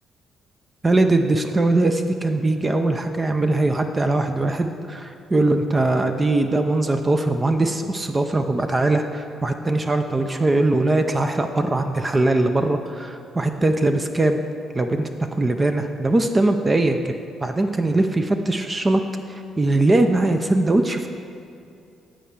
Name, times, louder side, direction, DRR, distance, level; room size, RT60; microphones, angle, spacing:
voice 1, 0.8-14.4 14.7-17.1 17.4-19.0 19.3-21.1, right 2 dB, 25° right, 6 dB, 0.5 m, -21 dB
8.8 x 4.5 x 7.0 m, 2.5 s
cardioid pair, 90°, 0 cm